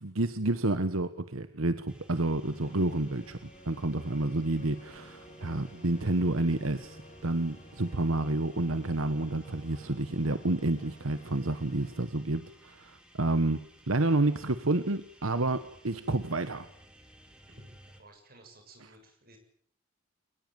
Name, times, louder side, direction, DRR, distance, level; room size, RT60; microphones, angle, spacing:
voice 1, 0.0-3.4 3.7-13.6 13.9-16.7, right 2 dB, 75° right, 11 dB, 1.3 m, -29 dB
sound 1, 1.9-18.0, right 1 dB, 5° right, 4.0 m, -56 dB
sound 2, 2.4-12.0, equal, 35° left, 5.4 m, -54 dB
voice 2, 18.0-19.4, right 2 dB, 45° right, 4 dB, 7.1 m, -55 dB
23.0 x 20.5 x 9.3 m, 0.64 s
head